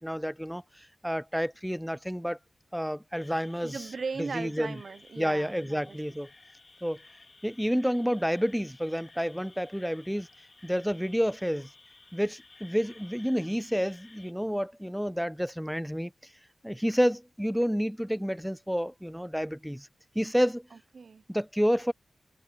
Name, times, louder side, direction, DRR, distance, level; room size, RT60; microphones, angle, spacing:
voice 1, 0.0-2.4 2.7-3.8 4.2-4.8 5.2-6.3 6.8-7.0 7.4-10.3 10.6-11.7 12.1-16.1 16.6-19.9 20.2-20.7 21.3-21.9, equal, ahead, 0.4 m, -29 dB
sound 1, 3.1-14.3, left 3 dB, 40° left, 2.5 m, -55 dB
voice 2, 3.6-6.0 20.7-21.2, right 4 dB, 65° right, 1.0 m, -38 dB
wide cardioid pair, 85°, 0 cm